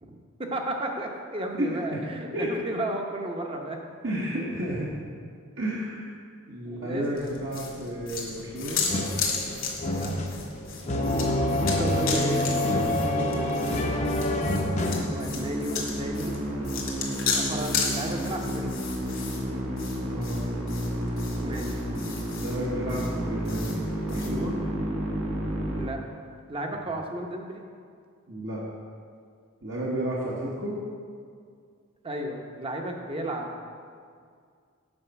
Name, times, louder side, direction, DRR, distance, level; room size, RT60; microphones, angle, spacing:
voice 1, 0.0-3.8 6.6-7.3 9.9-10.1 11.7-14.0 15.1-16.4 17.2-18.8 21.4-21.9 25.8-26.0 26.5-27.6 32.0-33.6, right 1 dB, 25° right, 2 dB, 0.8 m, -34 dB
voice 2, 4.0-4.9 5.6-6.1 6.5-8.8 10.8-11.1 20.0-20.4 22.4-24.6 26.7-26.9 28.3-28.6 29.6-30.8, right 1 dB, 60° right, -6 dB, 1.2 m, -32 dB
sound 1, 7.1-24.3, left 5 dB, 80° left, 2.0 m, -35 dB
sound 2, 8.9-15.0, left 1 dB, 35° left, 0.7 m, -27 dB
Musical instrument, 11.0-25.9, right 1 dB, 80° right, 1.4 m, -32 dB
8.9 x 5.1 x 7.0 m, 2.1 s
head